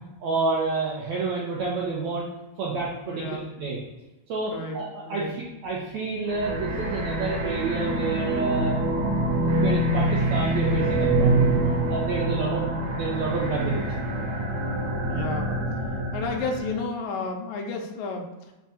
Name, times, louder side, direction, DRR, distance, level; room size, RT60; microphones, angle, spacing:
voice 1, 0.2-2.3 2.6-3.8 4.3-5.2 5.6-8.8 9.6-11.6 11.9-12.6 13.0-14.1, right 3 dB, 85° right, -4 dB, 1.6 m, -29 dB
voice 2, 3.1-3.5 4.5-5.4 12.3-12.8 15.1-15.5 16.1-18.5, left 3 dB, 80° left, 2 dB, 1.7 m, -32 dB
sound 1, 6.3-16.8, right 1 dB, 65° right, 2.0 m, -25 dB
5.3 x 2.3 x 4.1 m, 1.1 s
omnidirectional pair, 4.0 m